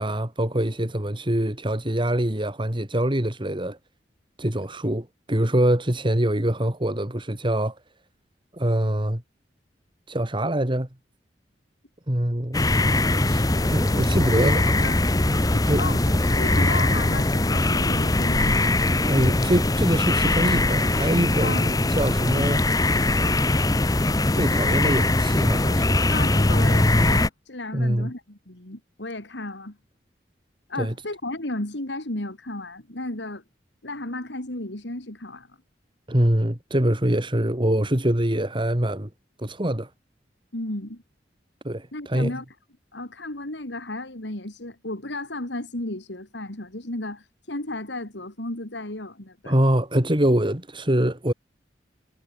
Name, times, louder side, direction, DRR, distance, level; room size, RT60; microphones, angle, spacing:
voice 1, 0.0-3.8 4.4-7.8 8.5-9.2 10.1-10.9 12.1-12.6 13.2-14.6 15.7-16.0 19.1-22.6 24.4-26.0 27.7-28.1 30.8-30.9 36.1-39.1 39.4-39.9 41.6-42.4 49.5-51.3, right 1 dB, 30° right, 2.7 m, -24 dB
sound 1, 12.5-27.3, left 2 dB, 20° left, 0.9 m, -21 dB
voice 2, 13.9-15.1 15.5-18.7 21.4-21.8 26.1-29.8 30.7-33.4 33.8-35.5 40.5-41.0 41.9-42.5 42.9-49.5, left 2 dB, 90° left, 3.5 m, -34 dB
head